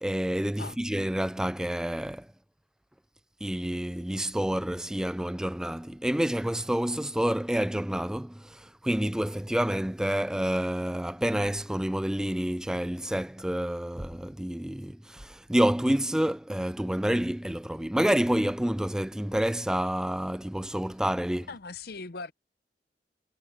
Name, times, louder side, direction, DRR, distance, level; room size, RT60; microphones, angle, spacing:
voice 1, 0.0-2.3 3.4-21.5, equal, 5° right, 0.3 m, -28 dB
voice 2, 21.5-22.3, left 4 dB, 60° left, 0.8 m, -39 dB
head